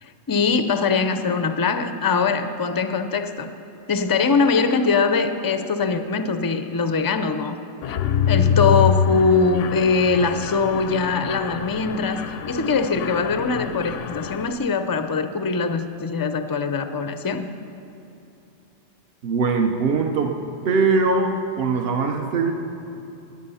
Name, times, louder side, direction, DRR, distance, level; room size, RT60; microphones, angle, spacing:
voice 1, 0.0-3.5 3.9-7.6 7.9-8.0 8.3-17.5, left 4 dB, 35° left, 9 dB, 0.3 m, -22 dB
Mechanisms, 7.8-14.5, left 7 dB, 85° left, 1.0 m, -25 dB
voice 2, 19.2-20.3 20.6-22.5, right 4 dB, 60° right, 4 dB, 0.9 m, -21 dB
19.5 x 8.1 x 5.6 m, 2.7 s
omnidirectional pair, 1.2 m